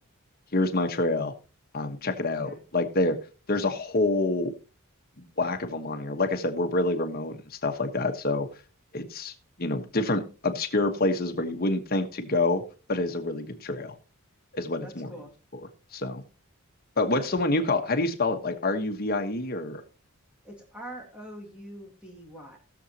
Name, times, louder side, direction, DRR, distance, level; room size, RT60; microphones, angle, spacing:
voice 1, 0.5-1.3 1.7-3.2 3.5-4.5 5.4-8.5 8.9-12.6 12.9-13.9 14.5-15.1 15.9-16.2 17.0-19.8, left 2 dB, 45° left, 5 dB, 1.2 m, -27 dB
voice 2, 14.8-15.3 17.1-17.3 20.4-22.6, right 1 dB, 5° right, -1 dB, 2.4 m, -43 dB
19.5 x 7.1 x 2.9 m, 0.34 s
head